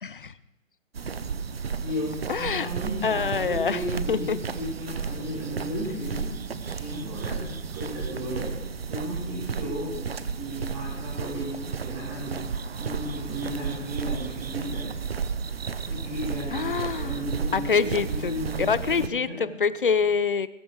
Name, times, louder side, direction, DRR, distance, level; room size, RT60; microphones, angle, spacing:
voice 1, 0.0-0.3 2.3-2.7 3.0-4.4 16.5-17.2 17.5-20.5, left 5 dB, 45° left, 17 dB, 0.5 m, -26 dB
sound 1, 0.9-19.1, right 5 dB, 50° right, 0.8 m, -33 dB
voice 2, 1.8-8.5 8.9-10.1 10.4-12.4 12.8-14.9 15.9-19.5, equal, 10° right, -6 dB, 2.2 m, -34 dB
21.0 x 8.1 x 4.7 m, 1.1 s
hypercardioid pair, 170°, 38 cm